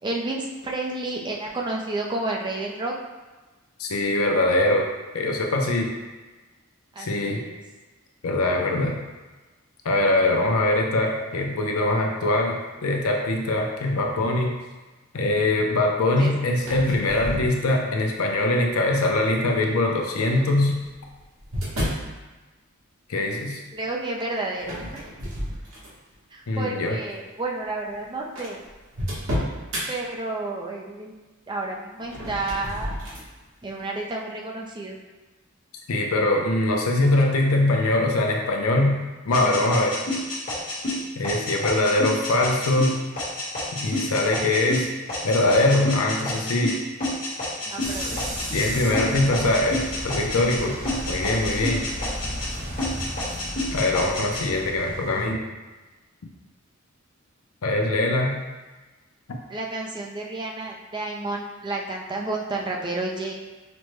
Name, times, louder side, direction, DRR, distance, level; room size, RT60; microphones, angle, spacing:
voice 1, 0.0-3.0 6.9-7.6 16.2-16.3 23.7-25.0 26.3-28.6 29.9-31.1 31.5-33.0 33.6-35.0 47.7-48.6 59.5-63.3, right 2 dB, 20° right, 0 dB, 0.4 m, -31 dB
voice 2, 3.8-4.8 5.1-5.9 7.0-7.4 8.2-9.0 9.8-14.5 15.1-20.7 23.1-23.6 26.5-27.0 35.9-39.0 39.3-40.0 41.2-43.0 43.7-44.9 45.2-46.8 48.5-50.8 51.1-51.8 53.7-55.4 57.6-58.4, left 2 dB, 80° left, 1 dB, 0.6 m, -22 dB
sound 1, 16.5-18.0 18.7-19.1 20.2-22.1 24.6-26.1 26.6-26.9 27.6-27.7 27.9-28.0 28.3-29.9 32.0-33.3, equal, 90° right, 1.2 m, -32 dB
sound 2, 39.3-48.7 48.9-50.6 50.8-52.5 52.8-54.4, left 1 dB, 40° left, 1.1 m, -29 dB
sound 3, 47.8-55.3, equal, 55° right, 0.9 m, -34 dB
5.1 x 2.1 x 3.1 m, 1.2 s
head